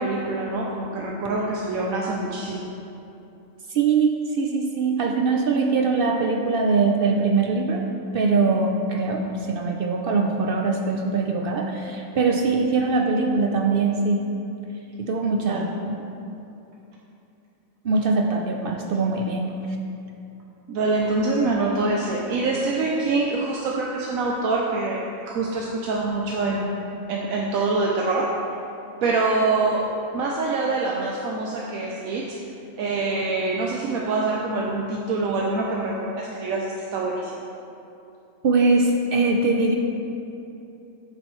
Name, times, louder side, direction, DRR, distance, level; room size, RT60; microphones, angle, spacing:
voice 1, 0.0-2.7 15.3-15.7 20.7-28.3 29.0-29.8 30.1-32.4 32.8-37.3, right 3 dB, 80° right, -2 dB, 1.1 m, -25 dB
voice 2, 3.7-7.8 8.1-14.2 15.0-16.0 17.8-19.5 38.4-39.8, right 4 dB, 60° right, 2 dB, 0.6 m, -22 dB
9.7 x 7.3 x 3.1 m, 2.8 s
omnidirectional pair, 1.5 m